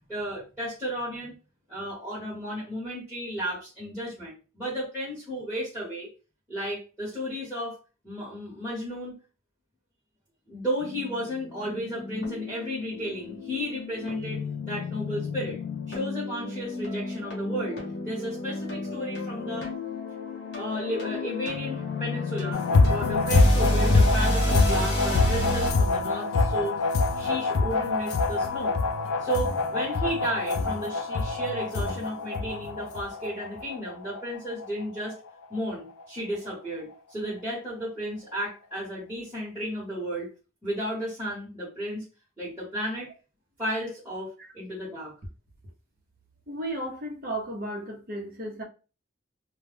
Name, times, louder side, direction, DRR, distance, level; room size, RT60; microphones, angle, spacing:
voice 1, 0.0-1.4 1.7-6.1 6.5-7.8 8.0-9.2 10.5-15.6 15.9-19.7 20.5-26.8 27.1-35.2 35.5-40.3 40.6-42.0 42.4-43.1 43.6-45.1, equal, 10° right, 1.0 m, -33 dB
sound 1, 10.8-25.7, left 1 dB, 55° left, 1.0 m, -30 dB
sound 2, 22.5-35.6 36.0-36.1 36.5-36.6, left 3 dB, 80° left, 0.4 m, -25 dB
voice 2, 46.5-48.6, right 1 dB, 45° right, 0.7 m, -34 dB
2.2 x 2.2 x 3.2 m
head